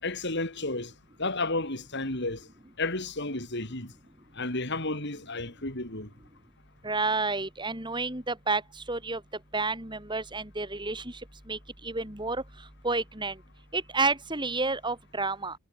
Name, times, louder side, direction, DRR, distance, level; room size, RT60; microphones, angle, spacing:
voice 1, 0.0-0.9 1.2-2.5 2.8-3.9 4.3-6.1, left 2 dB, 55° left, 5.8 m, -32 dB
voice 2, 6.8-8.6 8.9-9.2 9.5-11.2 11.5-12.4 12.8-13.4 13.7-15.6, right 3 dB, 20° right, 5.2 m, -30 dB
head